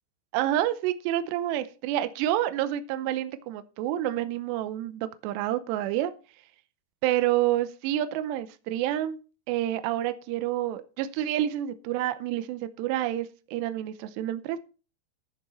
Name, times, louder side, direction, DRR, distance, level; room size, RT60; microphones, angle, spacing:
voice 1, 0.3-6.1 7.0-9.2 9.5-14.6, right 13 dB, 85° right, 11 dB, 2.5 m, -28 dB
15.0 x 6.7 x 4.4 m, 0.34 s
omnidirectional pair, 5.8 m